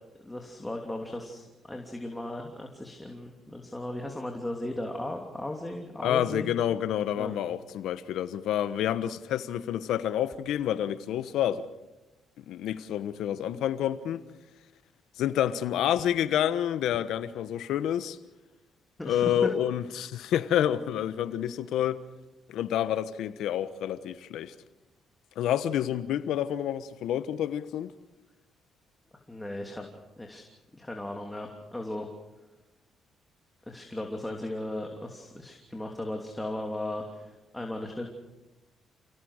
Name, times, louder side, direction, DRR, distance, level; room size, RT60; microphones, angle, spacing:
voice 1, 0.2-6.5 7.1-7.3 19.0-19.5 29.3-29.9 30.2-30.4 30.7-32.1 33.7-38.1, left 1 dB, 10° left, 2.9 m, -36 dB
voice 2, 6.0-11.7 12.4-14.2 15.2-18.2 19.0-22.0 22.5-24.5 25.4-27.9, left 10 dB, 85° left, 1.2 m, -28 dB
29.0 x 17.5 x 6.6 m
cardioid pair, 90°, 0 cm